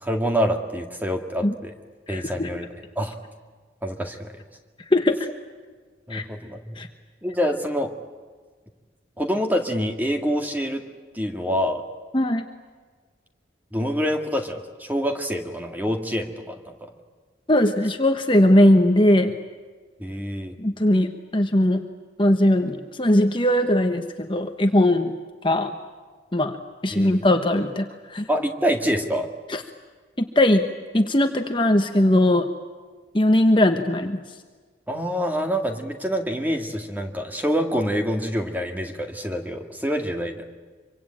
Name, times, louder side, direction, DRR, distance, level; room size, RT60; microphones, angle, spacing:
voice 1, 0.0-1.7 2.1-2.7 3.0-3.2 3.8-4.4 6.1-6.8 7.2-7.9 9.2-10.8 11.1-11.8 13.7-16.9 20.0-20.6 26.9-27.2 28.3-29.3 34.9-40.4, equal, 10° right, 4 dB, 2.0 m, -26 dB
voice 2, 2.1-2.5 4.9-5.3 6.1-6.2 6.8-6.9 12.1-12.5 17.5-19.3 20.6-21.9 22.2-25.1 25.4-25.7 26.3-26.6 26.8-28.3 29.5-29.6 30.2-30.6 30.9-32.5 33.1-34.2, left 1 dB, 25° left, 6 dB, 1.1 m, -19 dB
25.5 x 24.5 x 8.9 m, 1.5 s
head